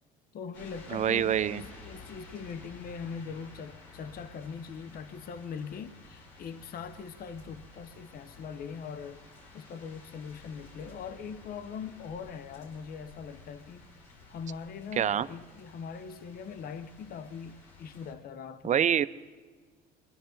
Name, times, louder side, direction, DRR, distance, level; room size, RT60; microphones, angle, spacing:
voice 1, 0.3-9.2 9.5-13.9 14.3-18.8, left 6 dB, 50° left, 13 dB, 0.8 m, -41 dB
sound 1, 0.5-18.1, left 2 dB, 80° left, 5.3 m, -52 dB
voice 2, 0.9-1.6 15.0-15.3 18.6-19.1, right 9 dB, 35° right, 13 dB, 0.6 m, -25 dB
22.0 x 11.5 x 3.9 m, 1.4 s
hypercardioid pair, 75°, 20 cm